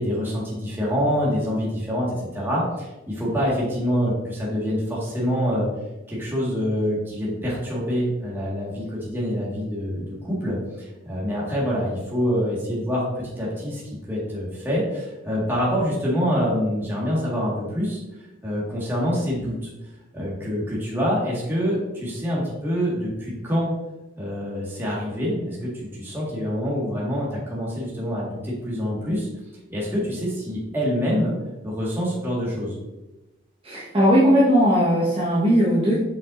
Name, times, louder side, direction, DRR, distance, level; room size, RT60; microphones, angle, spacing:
voice 1, 0.0-5.7 6.1-18.0 18.4-19.7 20.1-23.7 24.2-29.3 29.7-31.3 31.6-32.8, equal, 10° right, -6 dB, 1.8 m, -26 dB
voice 2, 33.6-36.0, equal, 25° right, -9 dB, 1.4 m, -18 dB
7.1 x 5.5 x 2.6 m, 1.0 s
head